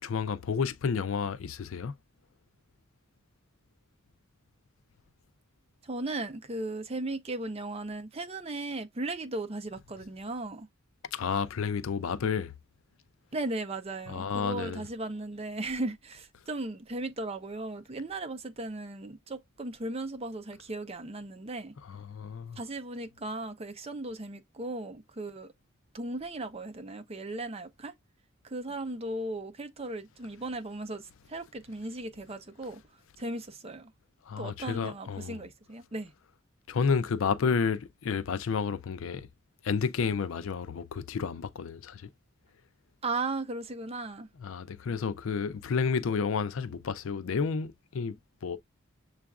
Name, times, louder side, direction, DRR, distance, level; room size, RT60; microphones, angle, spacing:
voice 1, 0.0-1.9 11.1-12.5 14.1-14.8 21.9-22.6 34.3-35.4 36.7-39.3 39.6-42.1 44.4-48.1 48.4-48.6, left 5 dB, 80° left, 0.4 m, -31 dB
voice 2, 5.8-10.7 13.3-21.7 22.6-25.5 25.9-27.9 28.4-32.8 33.2-33.9 34.4-36.1 43.0-44.3, right 2 dB, 30° right, 0.6 m, -36 dB
6.8 x 2.4 x 2.3 m
head